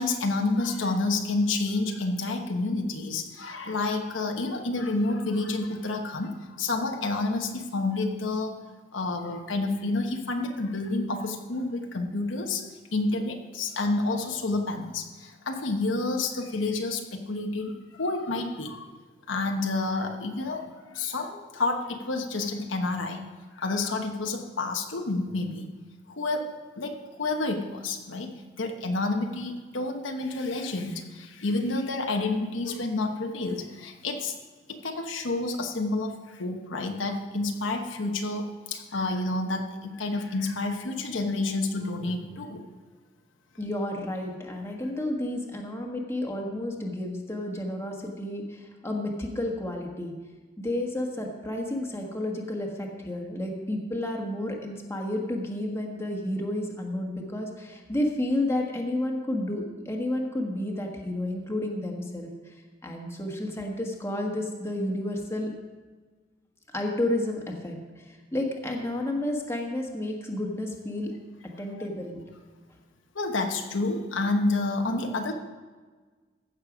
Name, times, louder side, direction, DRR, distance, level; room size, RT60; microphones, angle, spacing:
voice 1, 0.0-8.6 8.9-18.9 19.3-23.2 23.6-25.7 26.1-28.3 28.6-34.3 34.7-42.6 73.1-75.3, left 2 dB, 80° left, 4 dB, 1.1 m, -29 dB
voice 2, 43.6-50.1 50.6-62.5 62.8-65.5 66.7-71.1 71.6-72.2, left 1 dB, 15° left, 0 dB, 1.4 m, -31 dB
15.5 x 6.7 x 5.0 m, 1.4 s
head